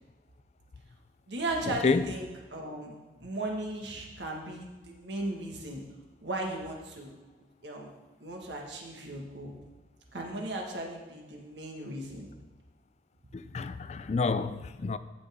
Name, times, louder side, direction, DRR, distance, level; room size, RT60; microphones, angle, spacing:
voice 1, 1.3-2.9 3.2-5.8 6.2-7.1 7.6-7.9 8.2-9.5 10.1-12.3, right 2 dB, 90° right, 1.7 m, -36 dB
voice 2, 13.3-15.0, left 4 dB, 40° left, 0.3 m, -29 dB
14.5 x 5.5 x 3.6 m
head